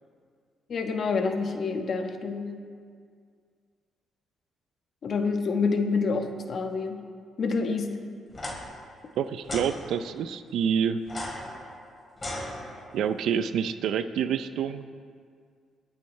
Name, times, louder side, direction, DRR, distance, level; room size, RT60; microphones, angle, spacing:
voice 1, 0.7-2.5 5.0-7.0 7.4-8.0, left 4 dB, 55° left, 4 dB, 1.4 m, -27 dB
sound 1, 8.3-8.5 9.4-9.7 11.0-13.1, left 1 dB, 25° left, 3.2 m, -36 dB
voice 2, 9.2-11.0 12.9-14.9, right 8 dB, 75° right, 11 dB, 0.6 m, -27 dB
23.0 x 8.9 x 3.3 m, 2.1 s
cardioid pair, 90°, 0 cm